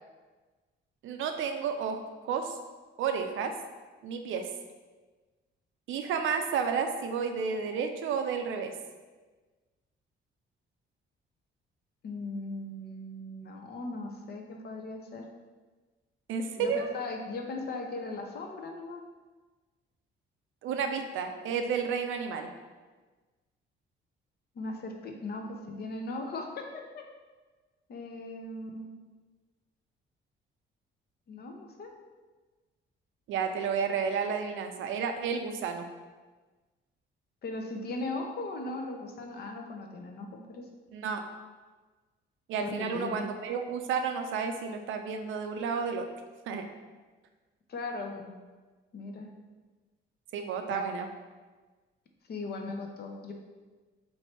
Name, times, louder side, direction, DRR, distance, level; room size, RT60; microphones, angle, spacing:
voice 1, 1.0-2.6 3.0-3.5 4.0-4.5 5.9-8.7 16.3-16.9 20.6-22.5 33.3-35.9 40.9-41.2 42.5-46.1 46.5-46.7 50.3-51.1, right 6 dB, 80° right, 6 dB, 0.5 m, -31 dB
voice 2, 12.0-15.3 16.6-19.0 24.5-26.6 26.9-27.0 27.9-28.9 31.3-31.9 37.4-40.6 42.6-43.2 47.7-48.3 48.9-49.3 50.7-50.9 52.3-53.3, left 2 dB, 55° left, 3 dB, 0.6 m, -38 dB
3.2 x 2.6 x 4.4 m, 1.3 s
cardioid pair, 90°, 20 cm